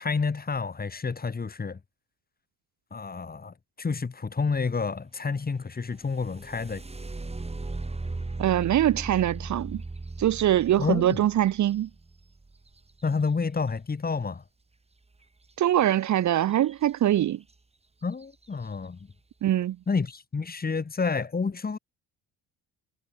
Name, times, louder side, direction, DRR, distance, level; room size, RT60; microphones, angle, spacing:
voice 1, 0.0-1.8 2.9-6.8 10.8-11.2 13.0-14.4 18.0-19.1 19.9-21.8, left 4 dB, 25° left, 2.6 m, -29 dB
sound 1, 5.9-13.7 15.8-15.9 16.3-16.9 17.5-17.6 18.1-18.5, right 3 dB, 20° right, 4.6 m, -38 dB
voice 2, 8.4-9.8 10.2-11.9 15.6-17.4 19.4-19.8, right 12 dB, 55° right, 1.0 m, -23 dB
cardioid pair, 85°, 34 cm